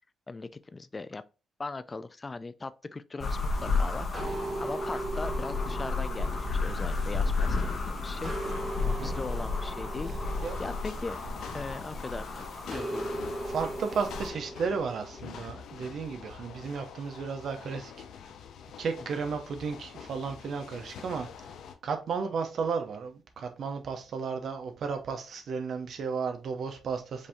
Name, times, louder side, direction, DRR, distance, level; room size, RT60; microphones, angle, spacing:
voice 1, 0.3-1.2 1.6-10.1 10.6-11.2 11.5-13.2, left 3 dB, 25° left, 0.4 m, -39 dB
sound 1, 3.2-14.3, left 3 dB, 40° left, 1.1 m, -32 dB
sound 2, 4.1-7.7 8.2-12.0 12.7-15.4, right 2 dB, 30° right, 1.0 m, -39 dB
voice 2, 8.8-9.2 10.4-10.6 13.5-17.9 18.8-21.3 21.8-27.3, right 5 dB, 65° right, 0.7 m, -33 dB
sound 3, 10.2-21.7, left 7 dB, 80° left, 0.6 m, -46 dB
5.2 x 2.6 x 3.5 m
cardioid pair, 110°, 0 cm